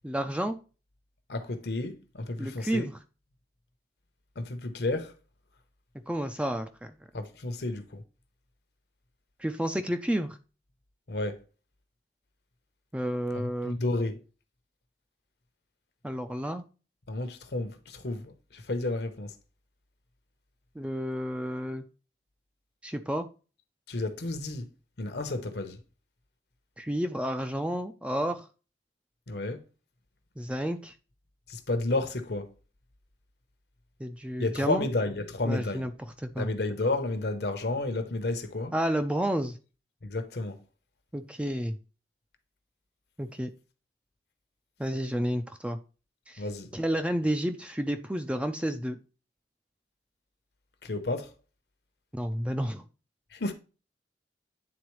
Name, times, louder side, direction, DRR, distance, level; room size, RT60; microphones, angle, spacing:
voice 1, 0.0-0.6 2.4-2.9 6.1-6.9 9.4-10.4 12.9-13.8 16.0-16.6 20.8-21.8 22.8-23.3 26.8-28.5 30.4-30.9 34.0-34.9 35.4-35.9 36.2-36.5 38.7-39.6 41.1-41.8 43.2-43.5 44.8-45.8 46.3-46.4 46.7-49.0 52.1-52.8, equal, 5° right, 0.4 m, -30 dB
voice 2, 1.3-2.9 4.4-5.1 7.1-8.0 11.1-11.4 13.3-14.2 17.1-19.3 23.9-24.7 25.0-25.8 29.3-29.6 31.5-32.5 34.4-35.9 36.4-38.7 40.0-40.6 46.4-46.7 50.8-51.3 53.3-53.5, left 2 dB, 65° left, 0.8 m, -31 dB
9.5 x 3.9 x 3.1 m
head